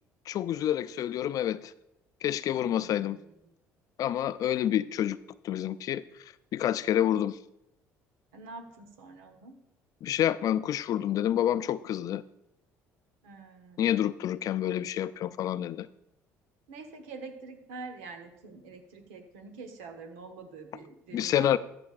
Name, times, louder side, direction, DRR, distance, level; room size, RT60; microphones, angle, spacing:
voice 1, 0.3-1.7 2.2-3.2 4.0-5.2 5.4-6.0 6.5-7.4 10.0-12.2 13.8-15.9 21.1-21.6, left 11 dB, 60° left, 0.4 m, -28 dB
voice 2, 2.7-3.3 8.3-9.6 13.2-13.9 16.7-21.6, right 4 dB, 85° right, 1.0 m, -46 dB
13.5 x 6.8 x 2.5 m
supercardioid pair, 70°, 7 cm